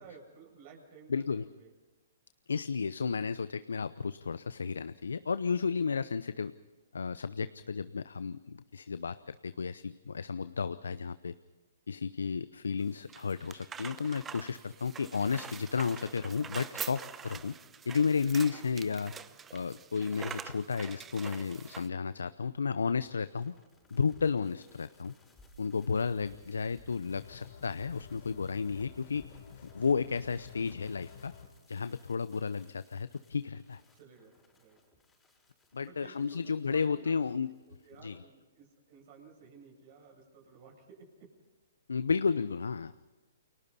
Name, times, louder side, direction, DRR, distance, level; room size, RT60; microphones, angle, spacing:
voice 1, 0.0-1.7 18.5-18.6 33.9-34.8 35.8-37.3 37.7-41.4, right 5 dB, 45° right, 1 dB, 7.7 m, -55 dB
voice 2, 1.1-1.4 2.5-6.5 6.9-11.3 11.9-17.5 17.9-19.1 19.5-23.5 23.9-25.1 25.6-29.3 29.7-31.3 31.7-33.8 35.7-37.6 38.0-38.2 41.9-42.9, left 5 dB, 80° left, 14 dB, 0.7 m, -32 dB
sound 1, 12.8-21.9, right 7 dB, 15° right, 0.9 m, -45 dB
sound 2, 23.2-38.2, left 1 dB, 10° left, 5.6 m, -63 dB
sound 3, 27.1-31.5, left 7 dB, 55° left, 4.0 m, -51 dB
29.5 x 23.0 x 4.3 m, 1.2 s
hypercardioid pair, 130°, 0 cm